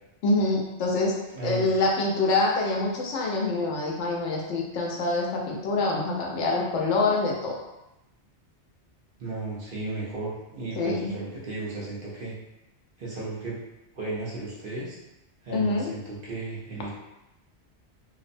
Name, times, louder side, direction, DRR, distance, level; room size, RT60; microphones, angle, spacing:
voice 1, 0.2-1.2 1.4-7.6 10.8-11.1 15.5-15.9, left 3 dB, 80° left, -2 dB, 0.9 m, -25 dB
voice 2, 1.3-1.7 9.2-12.3 13.0-13.6 13.9-15.0 15.4-16.9, right 2 dB, 55° right, -6 dB, 0.7 m, -34 dB
2.6 x 2.0 x 2.5 m, 0.93 s
omnidirectional pair, 1.2 m